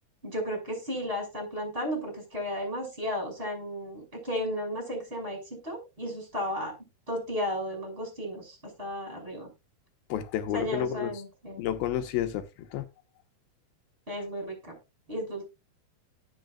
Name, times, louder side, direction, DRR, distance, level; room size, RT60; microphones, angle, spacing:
voice 1, 0.2-5.4 5.6-6.7 7.1-9.5 10.5-11.7 14.1-14.7 15.1-15.4, equal, 15° right, 6.8 m, -34 dB
voice 2, 10.1-11.1 11.6-12.4 12.7-12.8, left 11 dB, 80° left, 2.9 m, -30 dB
18.5 x 6.8 x 2.4 m
omnidirectional pair, 4.3 m